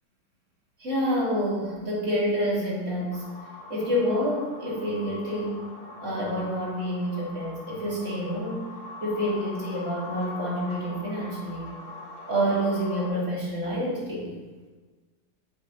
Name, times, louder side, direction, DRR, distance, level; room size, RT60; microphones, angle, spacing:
voice 1, 0.8-3.2 3.7-5.6 6.0-8.6 9.0-11.7 12.3-14.3, equal, 40° right, -6 dB, 2.1 m, -28 dB
sound 1, 3.1-13.1, left 3 dB, 80° left, 1.9 m, -43 dB
10.5 x 5.1 x 2.6 m, 1.3 s
omnidirectional pair, 2.1 m